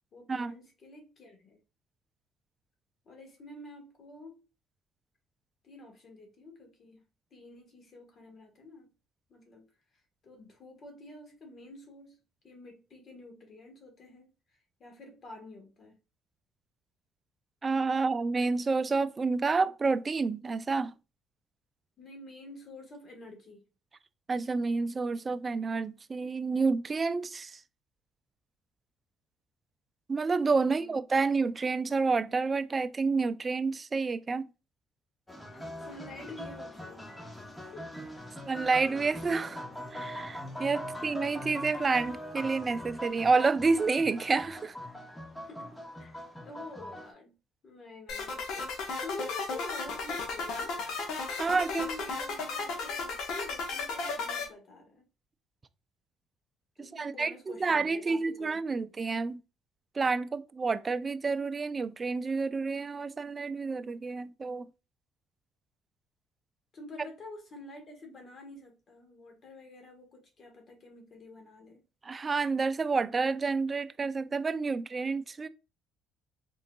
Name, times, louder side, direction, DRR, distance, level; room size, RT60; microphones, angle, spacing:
voice 1, 0.1-1.6 3.0-4.4 5.6-7.0 7.3-8.9 9.3-9.7 10.2-12.2 12.4-16.0 17.9-18.0 22.0-23.6 30.6-31.0 35.8-37.3 37.7-37.9 38.2-38.3 45.4-47.3 47.6-50.8 51.4-55.0 56.8-58.9 66.7-71.8, left 2 dB, 50° left, 1.4 m, -48 dB
voice 2, 17.6-20.9 24.3-27.6 30.1-34.4 38.5-39.6 39.9-44.7 51.3-52.1 56.8-59.4 60.0-64.7 72.0-75.5, right 4 dB, 30° right, 0.3 m, -29 dB
sound 1, 35.3-47.1, left 1 dB, 10° left, 1.1 m, -42 dB
sound 2, 48.1-54.4, left 4 dB, 70° left, 1.1 m, -34 dB
3.8 x 3.7 x 2.2 m
supercardioid pair, 80°, 0 cm